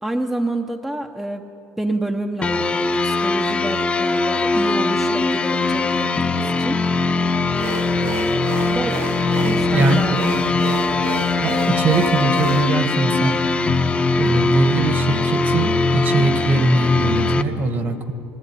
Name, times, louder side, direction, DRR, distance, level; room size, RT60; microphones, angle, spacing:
voice 1, 0.0-1.4 1.8-6.8 8.7-9.1 9.4-10.6, right 1 dB, 5° right, 4 dB, 0.8 m, -28 dB
sound 1, 2.4-17.4, left 3 dB, 20° left, 0.9 m, -20 dB
sound 2, 7.5-12.6, right 4 dB, 80° right, 4.3 m, -30 dB
voice 2, 11.4-13.4 14.2-18.1, right 3 dB, 35° right, 9 dB, 1.5 m, -21 dB
20.0 x 16.0 x 9.9 m, 2.9 s
cardioid pair, 140°, 6 cm